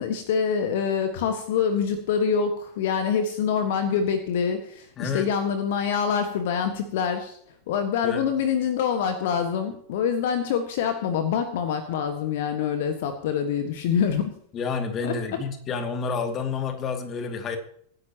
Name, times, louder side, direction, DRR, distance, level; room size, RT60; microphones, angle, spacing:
voice 1, 0.0-7.4 7.7-14.3 15.0-15.2, left 7 dB, 55° left, 8 dB, 1.6 m, -25 dB
voice 2, 5.0-5.3 8.0-8.3 14.5-17.6, left 5 dB, 30° left, 7 dB, 2.3 m, -29 dB
24.0 x 10.5 x 3.0 m, 0.64 s
figure-of-eight pair, 90°, 0 cm